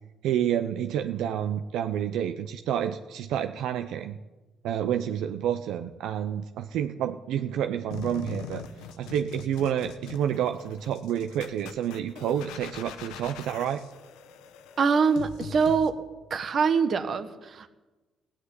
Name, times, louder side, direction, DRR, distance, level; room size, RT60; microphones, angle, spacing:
voice 1, 0.2-4.2 4.6-8.6 9.0-13.8, right 9 dB, 80° right, 8 dB, 0.6 m, -29 dB
sound 1, 7.9-15.9, left 8 dB, 90° left, 1.1 m, -42 dB
voice 2, 14.8-15.9 16.3-17.7, right 5 dB, 55° right, 10 dB, 1.4 m, -24 dB
15.0 x 8.6 x 9.8 m, 1.2 s
supercardioid pair, 75°, 0 cm